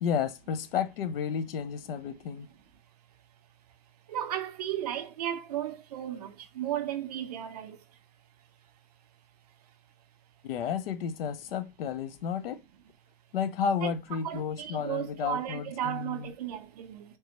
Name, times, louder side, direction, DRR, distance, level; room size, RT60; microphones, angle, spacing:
voice 1, 0.0-2.5 10.4-12.6 13.3-16.3, left 7 dB, 75° left, 0.6 m, -32 dB
voice 2, 4.1-7.8 13.8-13.9 14.2-17.0, right 11 dB, 45° right, 0.5 m, -34 dB
3.4 x 3.0 x 2.9 m
supercardioid pair, 175°, 29 cm